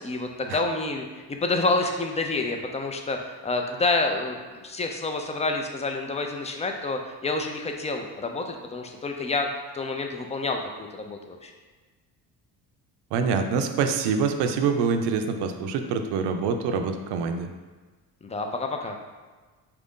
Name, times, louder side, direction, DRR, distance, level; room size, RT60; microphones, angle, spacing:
voice 1, 0.0-9.5 9.7-11.5 18.2-19.0, left 3 dB, 20° left, 4 dB, 0.4 m, -28 dB
voice 2, 13.1-17.5, right 5 dB, 80° right, 6 dB, 0.5 m, -25 dB
4.5 x 2.5 x 3.6 m, 1.3 s
cardioid pair, 100°, 39 cm